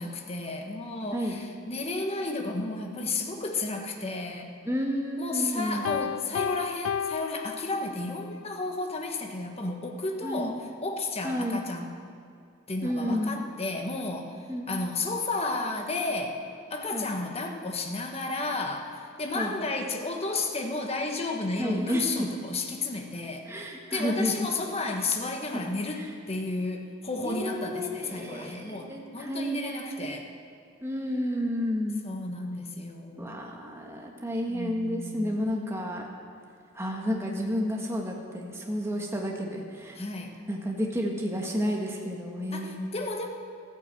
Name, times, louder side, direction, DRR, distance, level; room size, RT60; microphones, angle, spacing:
voice 1, 0.0-4.6 5.2-11.9 12.7-14.4 14.7-16.4 16.7-30.3 32.0-33.4 34.5-35.6 39.9-40.3 42.5-43.3, left 3 dB, 30° left, 2 dB, 1.3 m, -32 dB
voice 2, 1.1-1.4 4.6-5.9 10.2-10.5 11.2-11.6 12.8-13.4 14.5-14.7 16.9-17.1 19.3-19.6 21.6-22.0 23.5-24.3 26.0-26.1 27.2-30.1 30.8-32.0 33.2-36.0 36.7-40.0 40.5-42.9, equal, 15° right, -1 dB, 1.4 m, -31 dB
Piano, 5.9-8.2, left 8 dB, 90° left, 0.3 m, -32 dB
14.5 x 9.8 x 7.7 m, 2.3 s
head